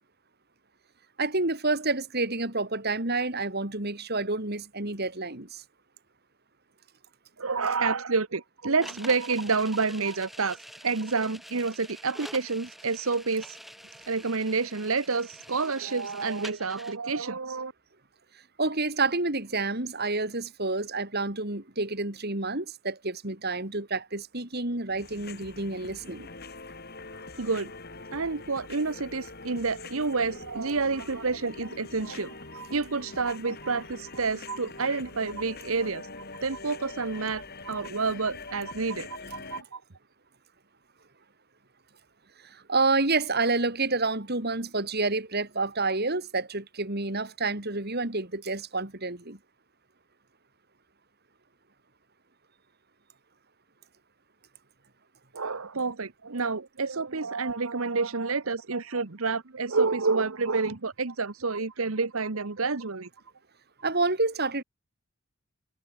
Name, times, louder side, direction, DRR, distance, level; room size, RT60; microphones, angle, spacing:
voice 1, 1.2-5.6 18.6-26.3 42.4-49.4 63.8-64.6, right 3 dB, 45° right, 3.6 m, -29 dB
voice 2, 7.4-13.6 14.1-17.7 27.4-27.7 28.1-39.8 55.3-63.1, right 4 dB, 75° right, 1.2 m, -29 dB
sound 1, 8.8-17.0, equal, ahead, 6.6 m, -46 dB
sound 2, 24.9-39.6, left 3 dB, 45° left, 5.9 m, -44 dB
head